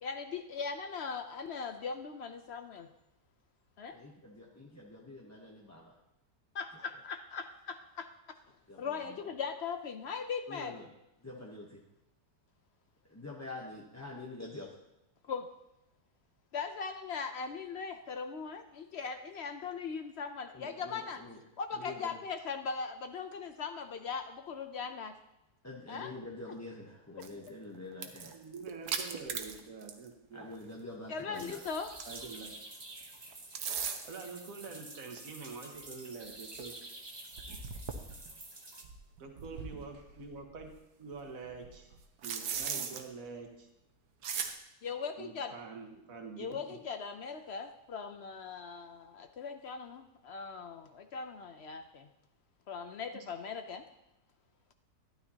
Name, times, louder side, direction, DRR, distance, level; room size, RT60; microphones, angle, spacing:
voice 1, 0.0-2.9 3.8-4.0 6.5-8.1 8.8-10.7 15.2-15.5 16.5-21.2 21.6-25.2 25.9-26.1 31.1-31.9 44.8-45.5 46.4-52.1 52.7-53.8, left 5 dB, 70° left, 8 dB, 0.6 m, -39 dB
voice 2, 3.9-5.9 8.7-9.2 10.5-10.9 11.2-11.8 13.1-14.7 20.5-21.4 21.7-22.2 25.6-28.4 30.3-31.6, left 2 dB, 15° left, -3 dB, 0.7 m, -46 dB
sound 1, 27.2-27.5 27.9-30.1 30.4-30.5 31.3-32.4 33.3-34.2 35.2-35.3 35.7-35.8 36.2-36.3 36.5-36.6 37.3-38.3 38.8-40.7 41.1-43.0 44.2-44.5, right 7 dB, 90° right, 1.4 m, -39 dB
voice 3, 28.3-30.5 32.1-32.5 34.1-36.8 39.2-40.7 41.0-42.0 42.2-43.7 45.2-46.6, right 4 dB, 60° right, 2 dB, 1.7 m, -46 dB
sound 2, 31.3-38.8, right 2 dB, 20° right, 0.8 m, -49 dB
12.0 x 11.0 x 2.8 m, 0.91 s
omnidirectional pair, 1.7 m